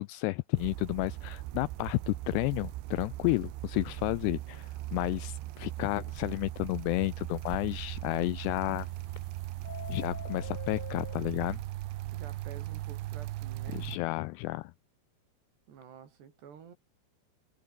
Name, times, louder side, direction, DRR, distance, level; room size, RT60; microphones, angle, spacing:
voice 1, 0.0-8.9 9.9-11.6 13.7-14.7, left 21 dB, 85° left, 2.4 m, -32 dB
sound 1, 0.6-14.0, right 17 dB, 80° right, 3.4 m, -39 dB
Subway metro underground, 4.2-4.6 5.0-5.1 5.4-5.5 6.0-6.1 8.5-9.2 9.5-11.2, left 8 dB, 45° left, 2.6 m, -45 dB
voice 2, 12.1-13.9 15.7-16.8, right 7 dB, 65° right, 5.5 m, -50 dB
omnidirectional pair, 5.2 m